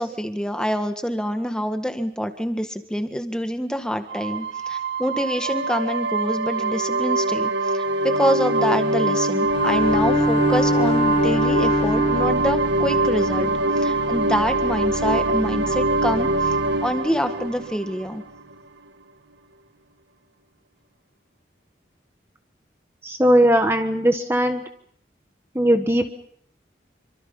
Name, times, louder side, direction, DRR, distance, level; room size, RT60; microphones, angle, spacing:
voice 1, 0.0-16.5 16.8-18.2, equal, 5° left, 7 dB, 1.6 m, -26 dB
sound 1, 4.1-18.5, right 2 dB, 85° right, 1.7 m, -23 dB
Bowed string instrument, 9.5-12.6, equal, 30° left, 1.1 m, -23 dB
voice 2, 23.0-24.6 25.5-26.1, equal, 15° right, 6 dB, 1.3 m, -19 dB
27.5 x 25.0 x 5.5 m, 0.68 s
head